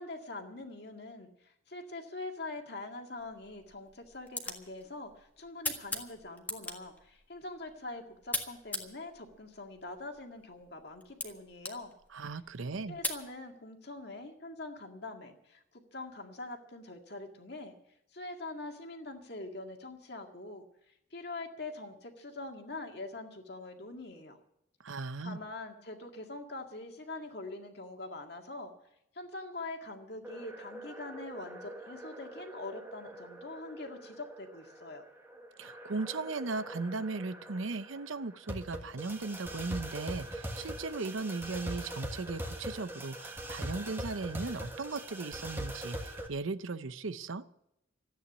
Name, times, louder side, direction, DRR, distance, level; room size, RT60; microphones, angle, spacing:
voice 1, 0.0-11.9 12.9-17.8 18.1-24.4 25.2-28.7 29.1-35.0, left 2 dB, 55° left, 4 dB, 2.0 m, -44 dB
sound 1, 3.2-13.3, left 2 dB, 10° left, 1.5 m, -42 dB
voice 2, 12.1-13.0 24.8-25.4 35.6-47.4, right 3 dB, 80° right, 13 dB, 0.7 m, -37 dB
sound 2, 30.2-46.3, right 1 dB, 10° right, 1.6 m, -43 dB
14.0 x 9.3 x 9.6 m, 0.81 s
head